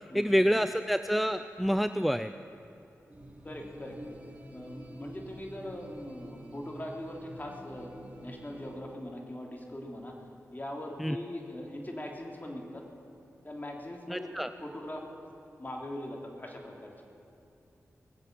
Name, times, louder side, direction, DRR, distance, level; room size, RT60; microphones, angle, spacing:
voice 1, 0.1-2.3 11.0-11.2 14.1-14.5, equal, ahead, 11 dB, 0.4 m, -27 dB
sound 1, 3.1-8.8, equal, 25° right, 4.1 m, -48 dB
voice 2, 3.4-4.0 4.5-7.9 8.2-10.1 10.5-12.8 13.4-15.1 15.6-16.9, left 1 dB, 30° left, 0 dB, 2.9 m, -41 dB
20.0 x 8.1 x 7.7 m, 2.8 s
cardioid pair, 40°, 6 cm